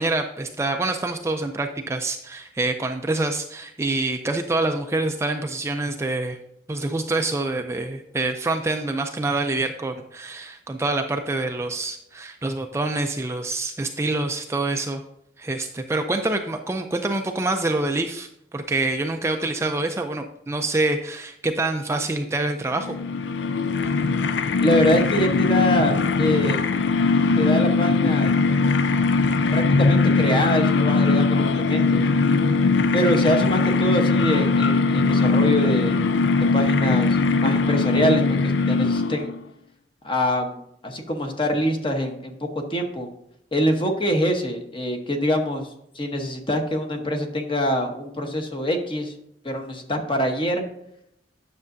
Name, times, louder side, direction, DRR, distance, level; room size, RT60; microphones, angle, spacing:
voice 1, 0.0-6.4 6.7-15.0 15.4-22.9, right 2 dB, 15° right, 5 dB, 0.4 m, -26 dB
sound 1, 22.7-39.4, left 4 dB, 90° left, 0.5 m, -20 dB
voice 2, 24.6-26.6 27.4-28.3 29.5-32.1 32.9-36.0 36.5-39.3 40.0-43.1 43.5-45.7 45.9-49.1 49.4-50.6, equal, 30° left, 4 dB, 1.0 m, -24 dB
9.7 x 6.5 x 2.6 m, 0.76 s
head